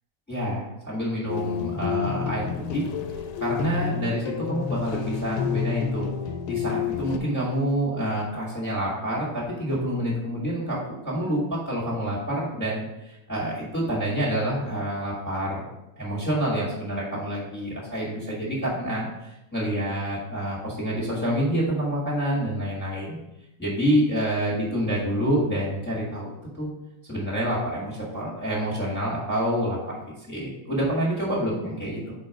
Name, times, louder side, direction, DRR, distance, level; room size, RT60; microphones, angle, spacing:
voice 1, 0.3-2.9 3.4-6.1 6.5-15.6 16.0-23.2 23.6-26.3 26.5-26.7 27.1-32.1, equal, 10° left, -6 dB, 0.4 m, -27 dB
Happy Day in Beach Hand Pan, 1.3-7.2, left 7 dB, 85° left, 1.9 m, -29 dB
4.5 x 4.3 x 4.8 m, 0.92 s
omnidirectional pair, 3.4 m